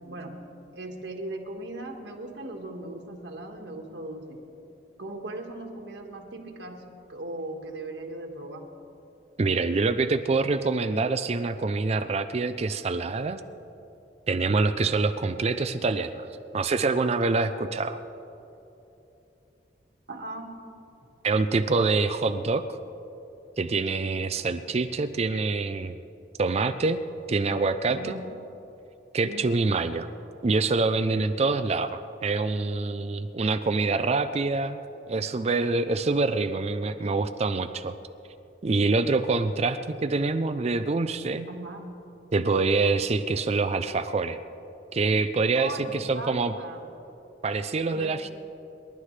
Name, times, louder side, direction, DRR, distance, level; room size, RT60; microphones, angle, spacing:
voice 1, 0.7-4.4 5.0-8.7 20.1-20.7 27.9-28.4 29.2-29.6 41.5-41.8 42.3-42.5 45.5-46.8 47.9-48.1, right 2 dB, 75° right, 1 dB, 1.7 m, -38 dB
voice 2, 9.4-13.4 14.3-16.3 16.5-18.0 21.2-22.6 23.6-26.0 26.4-27.0 27.3-28.2 29.1-30.1 30.4-37.9 38.6-41.5 42.3-44.4 44.9-46.5 47.4-48.3, right 3 dB, 35° right, 10 dB, 0.4 m, -25 dB
29.0 x 11.5 x 3.3 m, 2.9 s
head